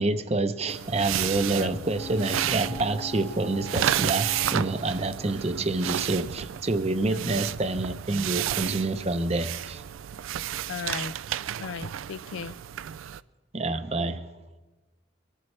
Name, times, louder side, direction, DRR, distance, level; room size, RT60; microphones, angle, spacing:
voice 1, 0.0-9.8 13.5-14.3, right 2 dB, 30° right, 0.7 m, -27 dB
sound 1, 0.7-13.2, right 11 dB, 90° right, 0.4 m, -32 dB
sound 2, 1.8-5.6 6.0-6.1, left 3 dB, 30° left, 1.0 m, -42 dB
voice 2, 7.1-7.4 10.7-11.1 11.6-12.6, left 6 dB, 80° left, 0.3 m, -36 dB
23.5 x 14.5 x 3.3 m
head